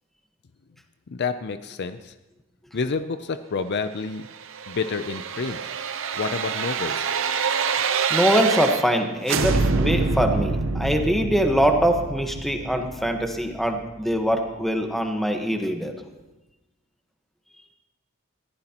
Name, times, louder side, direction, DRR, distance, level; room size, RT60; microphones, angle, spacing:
voice 1, 1.1-2.1 2.7-4.2 4.7-5.6 6.2-7.1, left 4 dB, 55° left, 11 dB, 0.5 m, -29 dB
sound 1, 4.3-9.0 9.3-14.1 14.5-14.6, right 4 dB, 65° right, 0.8 m, -26 dB
voice 2, 8.1-15.9, equal, ahead, 4 dB, 1.2 m, -23 dB
21.5 x 14.5 x 2.9 m, 1.0 s
head